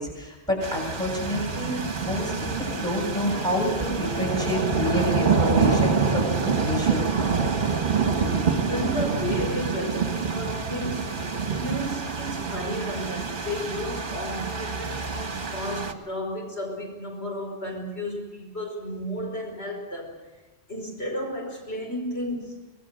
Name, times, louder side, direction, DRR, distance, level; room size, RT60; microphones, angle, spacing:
voice 1, 0.0-7.5, left 1 dB, 5° left, 0 dB, 7.5 m, -29 dB
sound 1, 0.6-15.9, right 5 dB, 50° right, 1.7 m, -26 dB
voice 2, 8.1-11.2 11.5-20.2 20.7-22.7, equal, 65° left, 0 dB, 5.5 m, -32 dB
25.5 x 19.5 x 6.6 m, 1.1 s
omnidirectional pair, 1.1 m